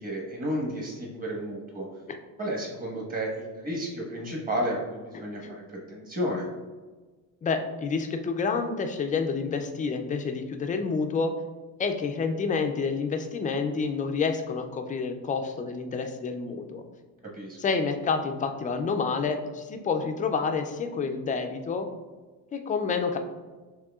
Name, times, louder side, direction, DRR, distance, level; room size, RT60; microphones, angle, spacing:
voice 1, 0.0-1.9 2.4-6.5 17.3-17.6, equal, 25° right, -2 dB, 1.3 m, -32 dB
voice 2, 7.4-11.3 11.8-16.8 17.6-21.9 22.5-23.2, left 5 dB, 25° left, 6 dB, 0.3 m, -28 dB
6.3 x 3.1 x 2.3 m, 1.3 s
cardioid pair, 135°, 34 cm